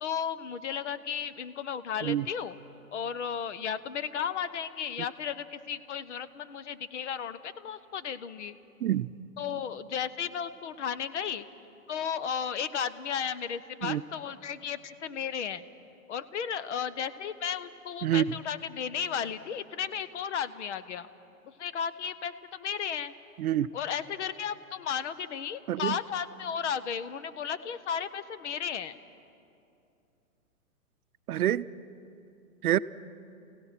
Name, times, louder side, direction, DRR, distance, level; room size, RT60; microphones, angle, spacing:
voice 1, 0.0-2.6 2.9-8.6 9.4-11.5 11.9-15.6 16.1-21.1 21.6-23.1 23.7-29.0, left 8 dB, 55° left, 14 dB, 0.8 m, -34 dB
voice 2, 8.8-9.1 13.8-14.0 18.0-18.3 23.4-23.7 25.7-26.0 31.3-31.7 32.6-32.8, right 12 dB, 80° right, 15 dB, 0.6 m, -26 dB
28.5 x 16.5 x 5.9 m, 2.7 s
hypercardioid pair, 155°, 43 cm